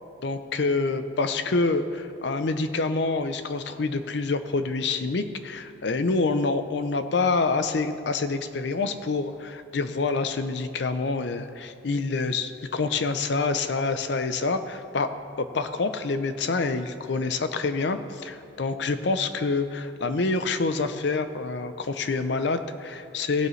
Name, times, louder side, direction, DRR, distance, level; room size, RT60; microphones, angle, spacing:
voice 1, 0.2-15.1 15.4-23.5, left 3 dB, 60° left, 10 dB, 0.5 m, -27 dB
17.0 x 7.6 x 3.2 m, 2.6 s
head